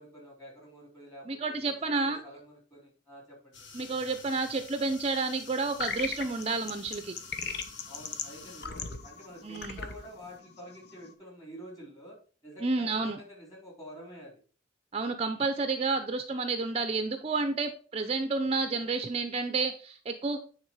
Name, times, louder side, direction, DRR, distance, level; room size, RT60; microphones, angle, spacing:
voice 1, 0.0-3.6 7.9-12.2 12.4-14.4, equal, 20° left, -2 dB, 3.8 m, -48 dB
voice 2, 1.3-2.2 3.7-7.1 9.4-9.8 12.6-13.2 14.9-20.4, right 3 dB, 35° right, 8 dB, 0.6 m, -30 dB
sound 1, 3.5-8.7, left 5 dB, 85° left, 1.4 m, -49 dB
sound 2, 5.8-11.1, left 5 dB, 60° left, 0.9 m, -39 dB
9.2 x 3.8 x 4.7 m, 0.38 s
head